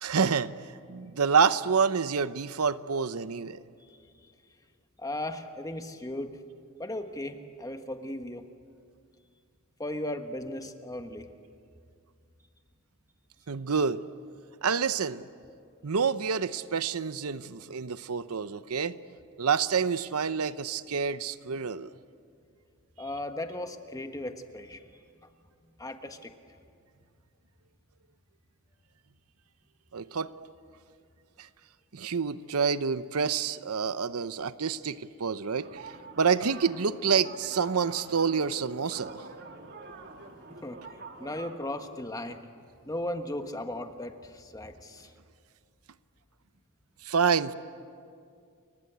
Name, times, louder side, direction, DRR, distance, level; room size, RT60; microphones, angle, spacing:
voice 1, 0.0-0.6 0.9-3.6 13.5-14.1 14.6-15.2 15.8-19.0 19.4-21.9 29.9-30.3 31.4-31.5 31.9-35.9 36.2-39.2 47.0-47.5, right 6 dB, 80° right, 14 dB, 0.8 m, -28 dB
voice 2, 5.0-6.4 6.8-8.5 9.8-11.3 23.0-24.8 25.8-26.3 40.5-40.8 41.2-42.4 42.8-45.1, left 1 dB, 15° left, 7 dB, 1.4 m, -36 dB
sound 1, 35.6-41.6, right 3 dB, 50° right, 2.1 m, -46 dB
30.0 x 24.0 x 8.1 m, 2.3 s
head